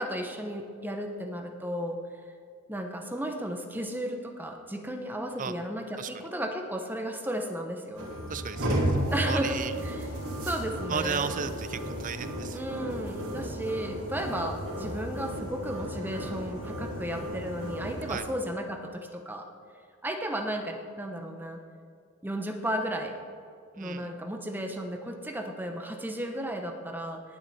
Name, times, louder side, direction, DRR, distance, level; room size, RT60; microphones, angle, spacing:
voice 1, 0.0-2.0 2.7-8.1 9.1-10.1 10.4-11.3 12.5-19.5 20.0-21.6 22.2-23.2 23.8-27.2, right 1 dB, 10° right, 3 dB, 1.0 m, -34 dB
sound 1, 7.9-18.1, equal, 90° right, 2.9 m, -34 dB
voice 2, 8.3-8.9 9.3-9.7 10.9-12.6 18.1-18.2 23.8-24.1, right 6 dB, 35° right, 11 dB, 0.5 m, -34 dB
18.5 x 7.8 x 4.3 m, 2.4 s
head